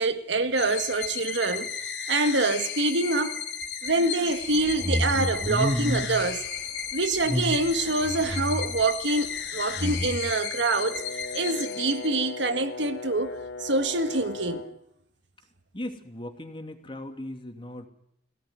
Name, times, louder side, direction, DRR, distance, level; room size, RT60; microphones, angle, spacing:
voice 1, 0.0-1.7 2.1-3.4 3.8-6.4 6.9-11.0 11.3-13.3 13.6-14.6, right 2 dB, 70° right, 1.7 m, -25 dB
sound 1, 0.6-12.5, left 7 dB, 70° left, 3.0 m, -35 dB
sound 2, 4.5-6.2 7.2-8.8 9.7-10.2, equal, 20° right, 1.9 m, -29 dB
Brass instrument, 10.6-14.8, left 3 dB, 90° left, 1.8 m, -38 dB
voice 2, 15.7-17.9, left 1 dB, 30° left, 2.8 m, -38 dB
22.5 x 17.0 x 9.6 m
head